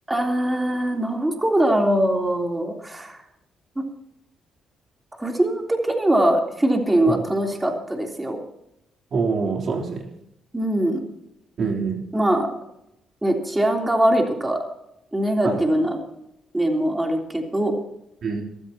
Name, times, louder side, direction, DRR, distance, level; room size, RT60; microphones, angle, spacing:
voice 1, 0.1-3.2 5.2-8.4 10.5-11.0 12.1-12.5 13.2-14.6 15.1-16.0 16.5-17.8, right 1 dB, 15° right, 1 dB, 3.4 m, -22 dB
voice 2, 9.1-10.0 11.6-12.0 15.4-15.6 18.2-18.4, right 4 dB, 55° right, 0 dB, 3.4 m, -25 dB
22.5 x 14.0 x 2.9 m, 0.80 s
cardioid pair, 90°, 0 cm